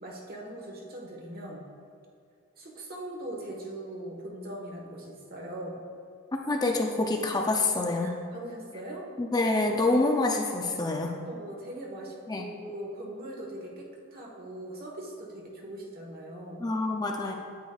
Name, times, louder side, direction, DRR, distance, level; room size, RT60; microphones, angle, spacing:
voice 1, 0.0-1.7 2.6-5.8 7.7-9.1 10.8-11.0 11.2-16.6, right 1 dB, 45° right, -1 dB, 1.3 m, -41 dB
voice 2, 6.3-8.2 9.2-11.1 12.3-12.5 16.6-17.3, left 2 dB, 20° left, 2 dB, 0.4 m, -27 dB
9.3 x 8.0 x 2.3 m, 2.3 s
head